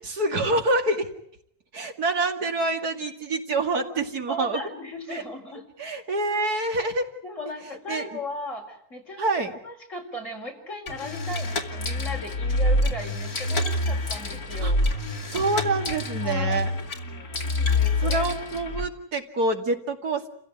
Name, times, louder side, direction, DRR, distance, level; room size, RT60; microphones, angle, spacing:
voice 1, 0.0-1.1 1.7-4.6 5.1-5.2 5.8-7.1 7.9-8.0 9.2-9.5 14.6-14.7 15.3-16.7 18.0-20.3, right 2 dB, 80° right, 4 dB, 2.8 m, -26 dB
voice 2, 4.3-5.6 7.2-9.3 9.6-14.8 16.2-16.6 17.4-18.3, left 1 dB, 50° left, 2 dB, 5.1 m, -37 dB
sound 1, 10.9-18.9, left 2 dB, 70° left, 2.9 m, -26 dB
29.5 x 16.0 x 9.4 m, 0.70 s
omnidirectional pair, 1.6 m